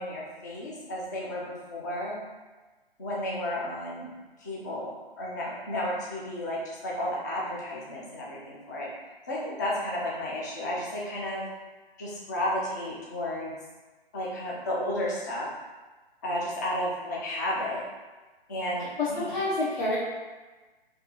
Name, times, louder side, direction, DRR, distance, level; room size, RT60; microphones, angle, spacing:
voice 1, 0.0-2.2 3.0-4.1 4.4-8.9 9.3-11.4 12.0-13.5 14.1-15.5 16.2-17.8 18.5-19.3, left 1 dB, 20° left, -5 dB, 0.3 m, -32 dB
voice 2, 19.0-20.0, left 2 dB, 50° left, -9 dB, 0.9 m, -28 dB
3.3 x 2.5 x 2.8 m, 1.3 s
figure-of-eight pair, 130°, 30 cm